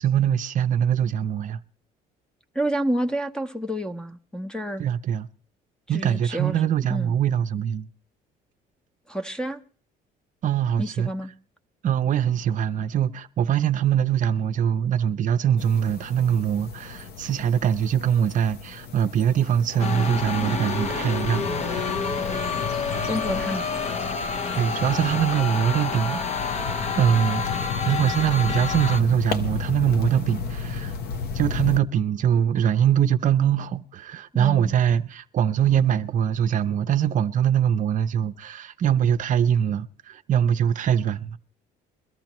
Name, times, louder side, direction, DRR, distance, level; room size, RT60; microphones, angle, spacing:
voice 1, 0.0-1.6 4.8-5.3 5.9-7.9 10.4-11.1 11.8-21.8 24.5-26.5 27.0-30.9 31.3-41.4, right 9 dB, 50° right, 0.6 m, -23 dB
voice 2, 2.5-4.8 5.9-6.6 6.9-7.1 9.1-9.6 10.8-11.3 21.4-22.6 23.0-23.8 34.3-34.7, right 1 dB, 5° left, 0.8 m, -30 dB
sound 1, 15.6-31.8, left 5 dB, 70° left, 0.9 m, -34 dB
sound 2, 19.8-29.0, left 5 dB, 40° left, 0.8 m, -28 dB
22.5 x 13.0 x 3.0 m
cardioid pair, 110°, 17 cm